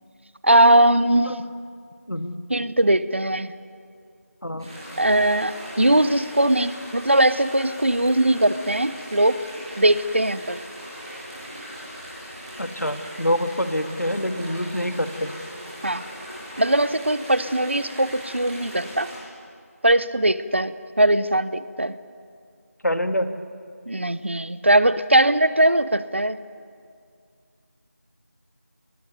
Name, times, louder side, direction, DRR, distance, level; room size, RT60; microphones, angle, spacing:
voice 1, 0.4-1.4 2.5-3.5 5.0-9.4 9.8-10.6 15.8-16.0 16.6-19.1 19.8-22.0 23.9-26.4, right 1 dB, 45° right, 15 dB, 0.9 m, -20 dB
voice 2, 2.1-2.4 4.4-4.7 12.6-15.3 22.8-23.3, equal, 90° left, 7 dB, 2.3 m, -26 dB
sound 1, 4.6-19.2, equal, 15° right, 7.4 m, -39 dB
27.0 x 20.5 x 9.6 m, 2.2 s
figure-of-eight pair, 170°, 9 cm